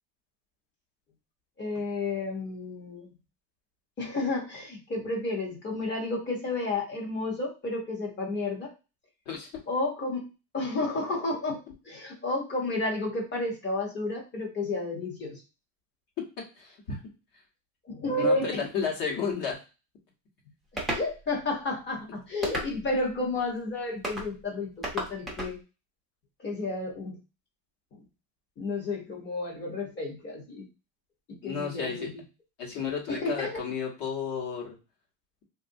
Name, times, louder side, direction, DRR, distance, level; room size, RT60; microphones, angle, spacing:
voice 1, 1.6-3.1 4.0-8.7 9.7-10.3 10.5-11.6 11.8-15.4 17.9-18.6 20.9-25.6 26.4-27.2 28.6-30.6 31.3-32.2 33.1-33.6, left 2 dB, 25° left, 0 dB, 1.0 m, -31 dB
voice 2, 16.4-17.0 18.2-19.5 31.4-32.1 32.6-34.7, left 6 dB, 45° left, -1 dB, 1.3 m, -32 dB
sound 1, 20.8-21.1 22.4-23.0 24.0-24.3 24.8-25.5, right 1 dB, ahead, 0.6 m, -32 dB
3.3 x 2.6 x 2.6 m, 0.30 s
cardioid pair, 145°, 47 cm